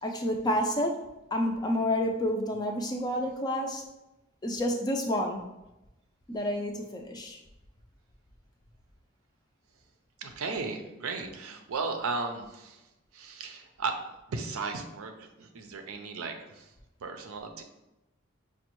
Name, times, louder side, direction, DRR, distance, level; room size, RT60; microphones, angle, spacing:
voice 1, 0.0-1.0 1.3-3.8 4.4-5.4 6.3-7.4, left 1 dB, 20° left, 3 dB, 0.3 m, -29 dB
voice 2, 10.2-12.8 13.1-14.0 14.3-16.7 17.0-17.6, right 4 dB, 85° right, 5 dB, 0.5 m, -35 dB
5.1 x 2.1 x 3.0 m, 0.95 s
head